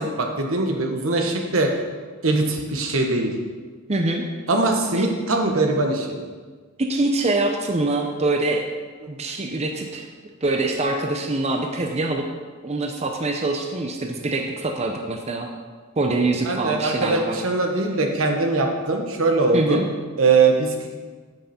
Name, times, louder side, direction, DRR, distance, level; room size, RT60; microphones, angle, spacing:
voice 1, 0.0-1.7 2.2-3.3 4.5-6.2 16.4-19.8 20.2-20.7, right 3 dB, 80° right, 3 dB, 1.3 m, -21 dB
voice 2, 3.9-4.3 4.9-5.1 6.8-8.6 9.1-10.0 10.4-12.2 12.6-15.5 16.0-17.4 19.5-19.9, right 2 dB, 30° right, 3 dB, 0.7 m, -24 dB
9.0 x 8.1 x 4.3 m, 1.5 s
head